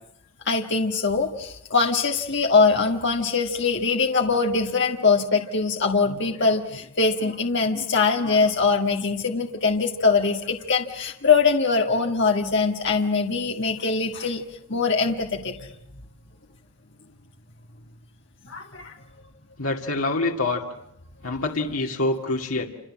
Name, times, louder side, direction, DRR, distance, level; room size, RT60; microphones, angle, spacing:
voice 1, 0.5-14.4 14.7-15.7 18.5-18.9, left 4 dB, 55° left, 2 dB, 1.8 m, -22 dB
voice 2, 19.6-20.6 21.2-22.7, left 2 dB, 75° left, 0 dB, 2.3 m, -25 dB
29.0 x 27.5 x 7.6 m, 0.78 s
head